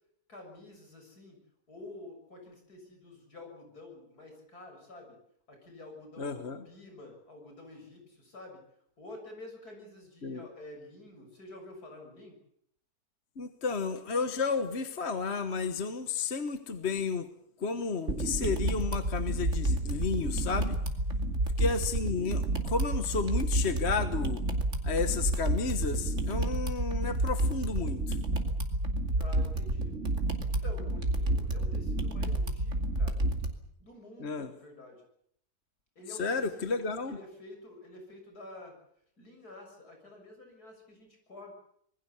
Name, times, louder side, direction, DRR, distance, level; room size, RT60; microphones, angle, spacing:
voice 1, 0.3-1.4 1.7-5.2 5.5-8.6 9.0-12.4 29.2-30.0 30.4-33.2 33.8-35.1 36.0-36.7 37.1-38.8 39.2-41.5, left 2 dB, 70° left, 3 dB, 7.5 m, -49 dB
voice 2, 6.2-6.7 10.2-10.4 13.4-17.3 17.6-20.8 21.6-24.4 24.8-28.2 34.2-34.5 36.2-37.2, left 4 dB, 45° left, 9 dB, 1.5 m, -32 dB
sound 1, 18.1-33.5, right 1 dB, 45° right, 2.8 m, -30 dB
26.5 x 20.5 x 7.2 m, 0.68 s
omnidirectional pair, 1.7 m